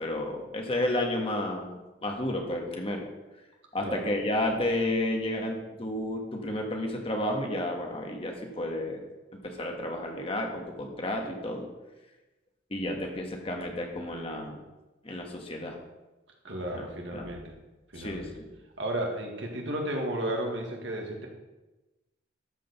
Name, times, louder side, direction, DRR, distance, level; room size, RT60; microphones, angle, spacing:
voice 1, 0.0-3.1 3.7-9.0 9.4-11.7 12.7-14.6 15.0-15.8 16.8-16.9 17.1-17.3 17.9-18.5, left 1 dB, 30° left, 2 dB, 1.5 m, -31 dB
voice 2, 16.4-17.5 17.9-18.3 18.8-21.3, right 1 dB, 70° right, 1 dB, 2.1 m, -33 dB
13.0 x 5.1 x 6.7 m, 1.1 s
head